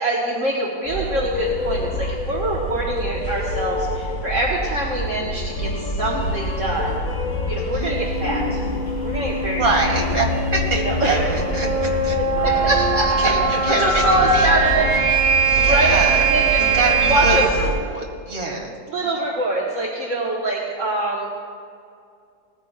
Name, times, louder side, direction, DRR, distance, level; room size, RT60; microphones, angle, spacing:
voice 1, 0.0-7.0 7.5-8.6 9.0-10.0 10.7-11.3 12.4-15.1 15.5-16.6 17.1-17.4 18.9-21.3, right 1 dB, 50° right, -4 dB, 1.7 m, -24 dB
sound 1, 0.8-17.8, left 1 dB, 35° left, 1.3 m, -26 dB
sound 2, 5.6-15.1, left 3 dB, 55° left, 1.7 m, -37 dB
voice 2, 7.5-8.0 9.4-12.2 13.2-14.0 14.3-14.5 15.5-16.2 16.7-18.7 19.0-19.1, right 3 dB, 35° right, -1 dB, 2.2 m, -25 dB
sound 3, 7.8-17.4, right 4 dB, 85° right, 2.5 m, -22 dB
19.5 x 15.0 x 2.3 m, 2.4 s
omnidirectional pair, 1.8 m